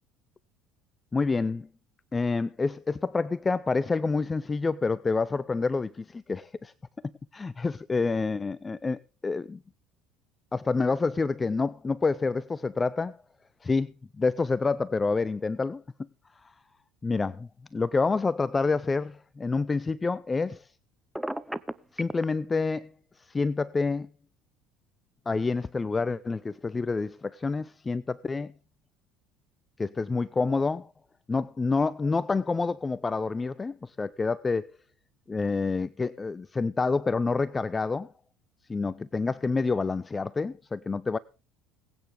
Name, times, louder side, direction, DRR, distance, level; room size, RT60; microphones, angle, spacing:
voice 1, 1.1-1.7 2.1-6.7 7.3-9.6 10.5-13.2 13.6-15.8 16.4-16.5 17.0-20.7 21.9-24.1 25.3-28.5 29.8-30.9 31.3-34.7 35.3-38.1 38.7-41.2, left 4 dB, 25° left, 0.5 m, -28 dB
Telephone, 21.1-22.3, right 1 dB, 5° right, 0.8 m, -33 dB
21.5 x 9.0 x 3.6 m
hypercardioid pair, 70°, 0 cm